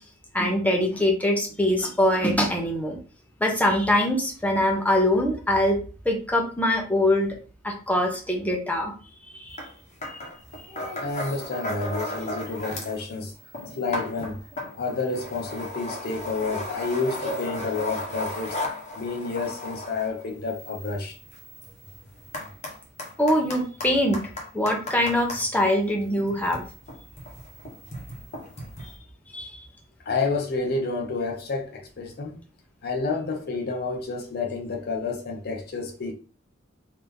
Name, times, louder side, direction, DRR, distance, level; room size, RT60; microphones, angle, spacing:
voice 1, 0.3-3.0 3.4-5.8 6.0-7.3 7.6-8.9 9.3-9.6 23.2-24.2 24.5-26.6 29.3-29.5, left 1 dB, 10° left, 0.8 m, -23 dB
sound 1, 9.6-9.7 10.0-13.0 13.3-25.4 26.2-29.0, left 1 dB, 35° left, 1.0 m, -35 dB
voice 2, 11.0-13.3 13.7-14.4 14.7-18.6 19.0-21.2 30.1-32.3 32.8-36.1, left 3 dB, 50° left, 0.6 m, -29 dB
3.5 x 2.8 x 3.4 m
head